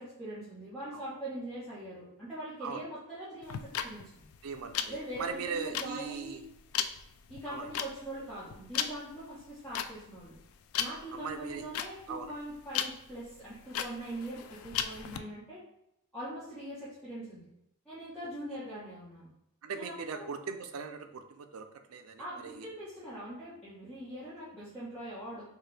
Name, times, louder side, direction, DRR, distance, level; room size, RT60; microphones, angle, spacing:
voice 1, 0.0-4.2 4.9-6.4 7.3-10.3 10.8-15.6 16.1-17.5 17.8-19.3 19.7-20.3 22.2-25.4, right 1 dB, 5° left, -12 dB, 1.0 m, -42 dB
sound 1, 3.4-15.2, left 9 dB, 80° left, 0.3 m, -37 dB
voice 2, 4.4-6.4 7.5-7.7 11.1-11.6 12.1-12.3 19.6-22.7, right 5 dB, 85° right, 7 dB, 0.4 m, -39 dB
4.6 x 2.2 x 3.2 m, 0.82 s
head